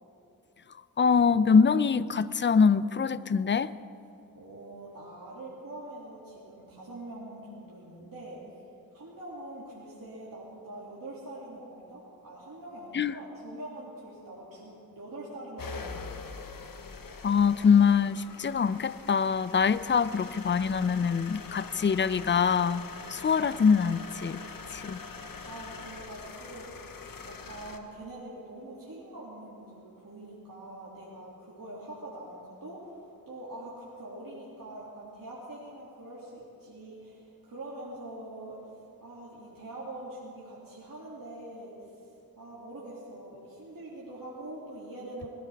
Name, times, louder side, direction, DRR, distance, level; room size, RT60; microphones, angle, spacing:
voice 1, 1.0-3.7 12.9-13.1 17.2-22.8 23.1-24.4 24.7-25.0, left 6 dB, 30° left, 17 dB, 0.4 m, -24 dB
voice 2, 4.3-8.6 8.9-15.9 25.4-38.7 39.0-42.1 42.4-45.3, right 1 dB, 65° right, -7 dB, 2.5 m, -44 dB
sound 1, 15.6-27.8, left 4 dB, 65° left, 1.0 m, -43 dB
20.5 x 14.5 x 3.5 m, 2.9 s
cardioid pair, 50°, 36 cm